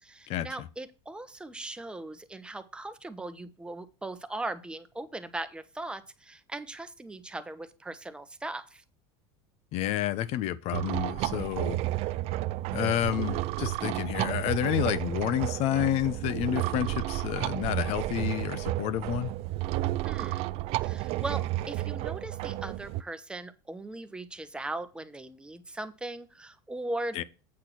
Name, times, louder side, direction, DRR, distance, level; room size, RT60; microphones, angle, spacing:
voice 1, 0.0-8.8 20.0-20.5 20.8-27.2, right 2 dB, 5° right, 1.0 m, -39 dB
voice 2, 9.7-11.8 12.7-19.3 27.1-27.2, left 13 dB, 55° left, 0.9 m, -30 dB
sound 1, 10.7-23.0, right 16 dB, 50° right, 0.5 m, -31 dB
8.6 x 6.0 x 4.5 m
supercardioid pair, 125°, 13 cm